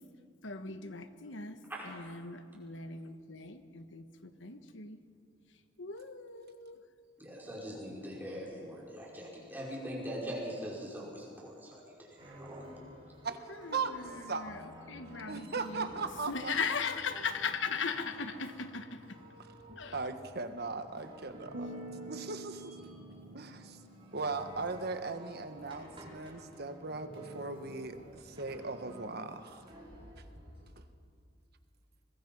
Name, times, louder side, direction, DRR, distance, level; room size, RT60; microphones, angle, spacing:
voice 1, 0.4-1.6 1.8-5.0 5.8-6.8 13.6-15.9 16.3-19.2 19.8-20.0, left 5 dB, 75° left, 9 dB, 1.3 m, -38 dB
voice 2, 7.2-11.8 12.1-12.6, equal, 10° right, -5 dB, 5.4 m, -42 dB
sound 1, 12.2-30.7, right 1 dB, 30° right, 4.8 m, -51 dB
voice 3, 15.3-16.5 19.9-21.8 22.1-22.8 23.3-23.8 24.1-29.6 30.8-30.9, right 4 dB, 55° right, 8 dB, 1.4 m, -38 dB
sound 2, 21.5-24.9, right 1 dB, 75° right, 1.2 m, -48 dB
23.5 x 21.0 x 5.5 m, 2.3 s
head